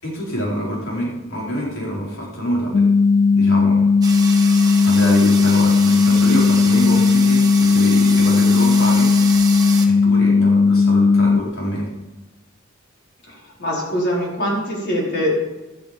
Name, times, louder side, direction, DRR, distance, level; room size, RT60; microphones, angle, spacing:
voice 1, 0.0-2.9 3.3-3.9 4.8-9.1 9.8-11.9, equal, 85° left, -4 dB, 4.7 m, -26 dB
sound 1, 2.7-11.4, left 4 dB, 35° left, 0.3 m, -15 dB
sound 2, 4.0-9.9, right 5 dB, 20° right, 1.6 m, -29 dB
voice 2, 13.3-15.3, equal, 55° left, -3 dB, 4.8 m, -23 dB
13.0 x 12.0 x 5.3 m, 1.1 s
head